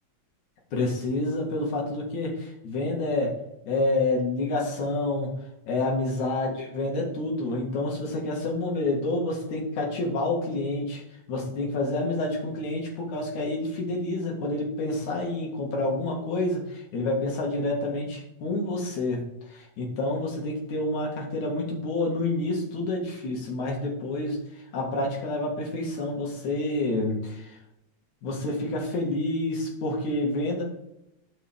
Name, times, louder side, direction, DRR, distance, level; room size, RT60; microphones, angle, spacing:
voice 1, 0.7-3.3 3.7-5.3 5.7-11.0 11.3-19.2 19.5-24.4 24.7-27.4 28.2-30.6, left 2 dB, 80° left, -1 dB, 3.6 m, -28 dB
12.5 x 5.5 x 3.7 m, 0.85 s
omnidirectional pair, 3.3 m